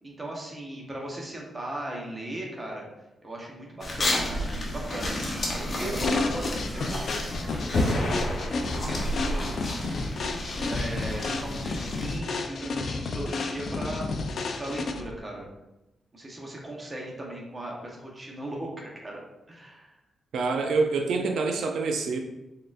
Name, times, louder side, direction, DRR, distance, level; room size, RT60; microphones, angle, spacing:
voice 1, 0.0-2.9 3.2-8.1 8.7-9.9 10.7-14.1 14.6-15.5 16.1-19.2 19.5-19.9, right 1 dB, 20° right, -2 dB, 0.8 m, -38 dB
sound 1, 3.8-12.2, left 1 dB, 35° left, 0.8 m, -32 dB
sound 2, 6.0-15.2, left 3 dB, 50° left, 0.3 m, -32 dB
sound 3, 7.7-9.4, left 1 dB, 75° left, 0.8 m, -29 dB
voice 2, 20.3-22.2, right 4 dB, 85° right, 4 dB, 0.4 m, -26 dB
4.7 x 3.7 x 2.4 m, 0.96 s
wide cardioid pair, 180°, 0 cm